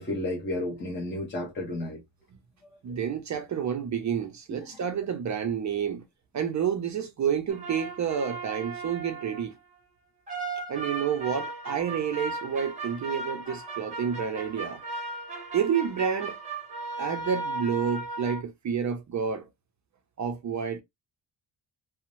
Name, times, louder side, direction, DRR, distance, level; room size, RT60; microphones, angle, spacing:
voice 1, 0.0-2.0 2.9-3.0 4.5-4.8, left 1 dB, 25° left, 0.7 m, -32 dB
voice 2, 2.8-6.0 6.3-9.6 10.7-14.8 15.5-16.4 17.0-19.5 20.2-20.8, right 7 dB, 40° right, 0.4 m, -29 dB
sound 1, 7.5-9.5 10.3-18.4, right 3 dB, 15° right, 1.0 m, -36 dB
2.6 x 2.0 x 2.9 m
wide cardioid pair, 175°, 45 cm